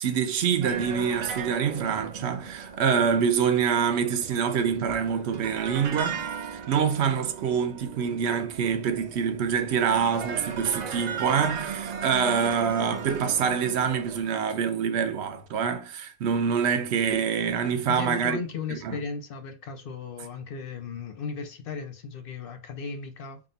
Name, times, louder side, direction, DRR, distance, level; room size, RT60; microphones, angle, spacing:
voice 1, 0.0-6.3 6.7-18.4 18.7-19.0, right 7 dB, 80° right, 0.9 m, -26 dB
sound 1, 0.6-14.2, right 6 dB, 50° right, 0.5 m, -37 dB
voice 2, 17.9-23.4, left 5 dB, 60° left, 0.8 m, -36 dB
3.6 x 2.3 x 3.8 m
omnidirectional pair, 1.1 m